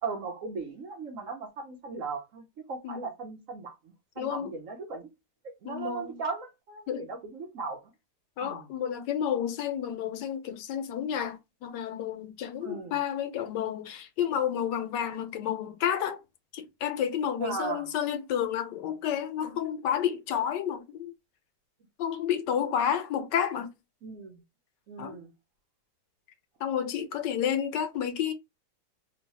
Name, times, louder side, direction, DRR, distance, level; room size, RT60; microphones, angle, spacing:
voice 1, 0.0-5.1 5.6-7.8 8.4-8.7 12.6-13.0 17.4-17.9 24.0-24.4 24.9-25.3, right 4 dB, 60° right, 0.9 m, -37 dB
voice 2, 4.2-4.5 5.6-6.2 6.9-7.0 8.4-16.2 16.5-21.1 22.0-23.7 25.0-25.2 26.6-28.3, left 9 dB, 85° left, 1.3 m, -30 dB
3.1 x 2.2 x 4.0 m
omnidirectional pair, 1.9 m